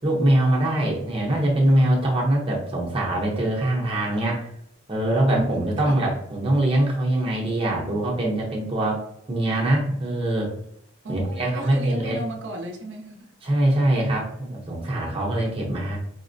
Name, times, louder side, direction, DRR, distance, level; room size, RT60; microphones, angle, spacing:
voice 1, 0.0-4.5 4.9-9.0 9.3-10.5 11.1-12.2 13.4-16.0, right 1 dB, 30° right, 0.8 m, -23 dB
voice 2, 5.3-6.0 11.0-13.4, equal, 70° right, 0.6 m, -34 dB
4.1 x 2.0 x 2.5 m
head